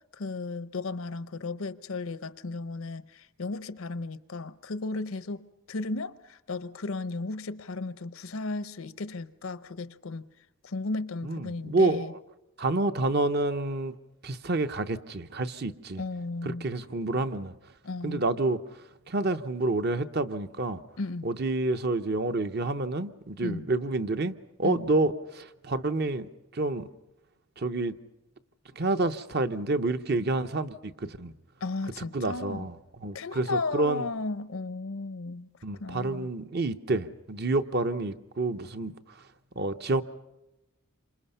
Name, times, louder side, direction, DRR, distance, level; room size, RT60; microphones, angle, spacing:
voice 1, 0.1-10.3 10.6-12.1 16.0-16.7 17.8-18.2 21.0-21.3 23.4-23.7 24.6-24.8 31.6-32.7 33.0-35.5 35.8-36.3, left 3 dB, 70° left, 0.7 m, -35 dB
voice 2, 11.2-12.2 12.6-13.9 14.2-16.0 16.4-17.5 18.0-18.6 19.1-20.8 21.2-26.9 27.6-27.9 28.7-31.3 32.1-32.8 33.0-34.0 35.6-38.9 39.6-40.0, right 2 dB, 50° right, 0.8 m, -28 dB
28.0 x 26.0 x 5.6 m
head